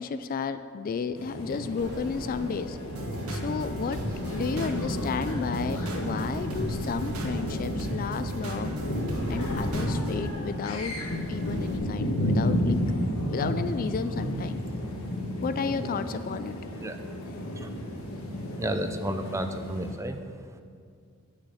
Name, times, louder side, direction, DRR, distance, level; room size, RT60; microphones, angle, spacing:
voice 1, 0.0-2.8 3.3-4.0 4.3-8.8 9.3-10.9 11.3-12.8 13.3-14.6 15.4-16.6 17.2-17.5, left 5 dB, 40° left, 11 dB, 0.3 m, -32 dB
sound 1, 1.2-20.0, equal, 75° left, 1.4 m, -32 dB
sound 2, 1.8-11.8, right 1 dB, 55° right, 1.2 m, -45 dB
sound 3, 2.9-10.3, right 1 dB, 85° right, 1.3 m, -35 dB
voice 2, 18.6-20.2, right 1 dB, 15° right, 7 dB, 0.5 m, -32 dB
8.4 x 6.4 x 8.1 m, 2.2 s
head